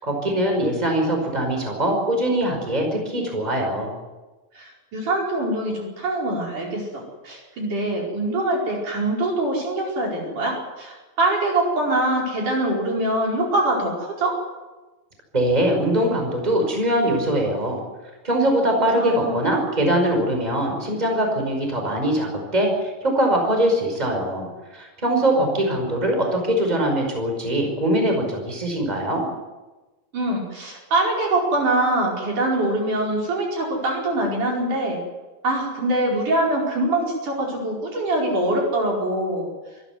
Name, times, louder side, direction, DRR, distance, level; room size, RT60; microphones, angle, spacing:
voice 1, 0.0-3.9 15.3-17.8 18.2-29.3, right 1 dB, 10° right, 2 dB, 5.2 m, -22 dB
voice 2, 4.5-14.4 18.7-19.4 30.1-35.0 35.4-39.5, right 1 dB, 60° right, -2 dB, 6.3 m, -24 dB
26.0 x 13.5 x 9.5 m, 1.2 s
omnidirectional pair, 4.2 m